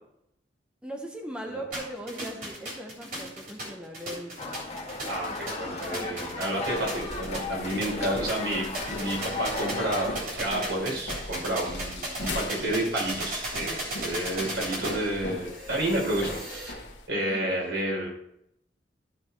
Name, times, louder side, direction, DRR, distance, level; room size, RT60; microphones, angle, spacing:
voice 1, 0.8-4.9 5.7-6.2 6.9-7.1 7.9-8.1 17.2-17.6, right 1 dB, 5° right, 2 dB, 1.0 m, -40 dB
sound 1, 1.7-16.7, right 1 dB, 50° right, 3.7 m, -37 dB
sound 2, 4.4-10.2, left 3 dB, 40° left, 1.6 m, -36 dB
voice 2, 5.1-16.8 17.1-18.1, right 1 dB, 85° right, -2 dB, 4.4 m, -30 dB
sound 3, 6.7-17.1, left 2 dB, 70° left, 1.5 m, -40 dB
14.0 x 4.9 x 4.7 m, 0.76 s
head